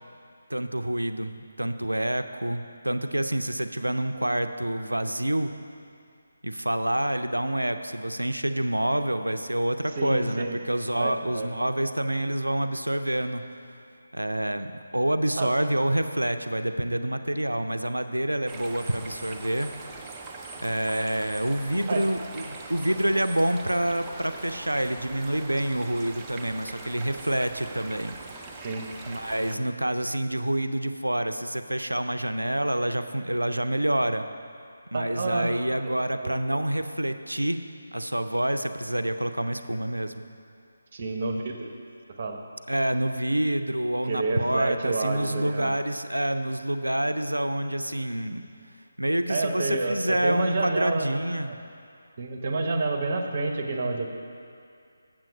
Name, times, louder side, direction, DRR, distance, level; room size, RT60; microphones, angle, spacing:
voice 1, 0.5-5.5 6.4-13.4 14.1-19.7 20.6-28.2 29.1-34.3 34.9-37.6 37.9-40.2 42.7-48.4 49.0-51.5, right 1 dB, 85° right, 9 dB, 0.5 m, -27 dB
voice 2, 10.0-10.6 11.0-11.5 15.4-15.5 21.9-22.0 28.6-28.8 34.9-35.6 35.8-35.9 36.2-36.4 40.9-41.7 42.2-42.4 44.1-45.7 49.3-51.1 51.5-51.6 52.2-54.1, right 3 dB, 40° right, 3 dB, 0.9 m, -29 dB
sound 1, 18.5-29.6, right 3 dB, 15° right, 0.5 m, -42 dB
7.6 x 7.5 x 5.1 m, 2.4 s
figure-of-eight pair, 150°, 0 cm